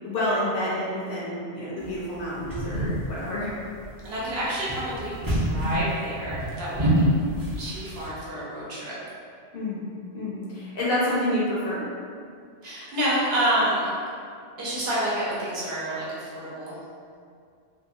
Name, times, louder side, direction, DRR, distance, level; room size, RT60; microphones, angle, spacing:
voice 1, 0.0-3.6 6.8-7.1 9.5-9.8 10.1-11.8, left 1 dB, 60° left, -8 dB, 0.8 m, -28 dB
sound 1, 1.8-8.1, right 1 dB, 30° right, 0.4 m, -28 dB
voice 2, 4.0-7.1 7.6-9.0 12.6-13.9 14.6-16.8, right 1 dB, 65° right, -7 dB, 0.9 m, -28 dB
2.8 x 2.1 x 2.6 m, 2.3 s
omnidirectional pair, 1.2 m